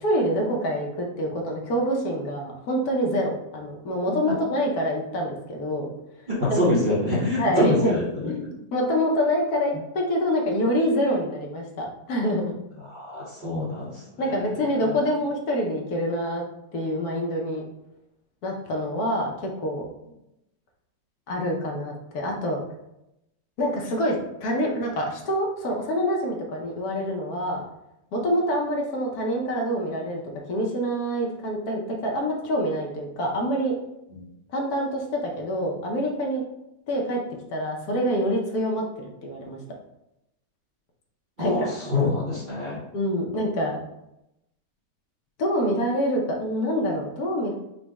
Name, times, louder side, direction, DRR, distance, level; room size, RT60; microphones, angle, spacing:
voice 1, 0.0-5.9 6.5-6.7 7.4-7.9 8.2-12.4 14.2-16.4 16.7-17.6 18.4-19.8 21.3-22.6 23.6-27.6 28.1-30.2 30.5-33.7 34.5-36.4 36.9-37.2 37.5-38.8 39.2-39.6 41.4-41.7 42.9-43.8 45.4-47.5, equal, 65° left, 0 dB, 1.2 m, -26 dB
voice 2, 6.3-8.5 12.9-14.5 34.1-34.2 41.4-42.8, left 1 dB, 40° right, -7 dB, 0.8 m, -25 dB
4.0 x 2.1 x 4.6 m, 0.87 s
omnidirectional pair, 1.8 m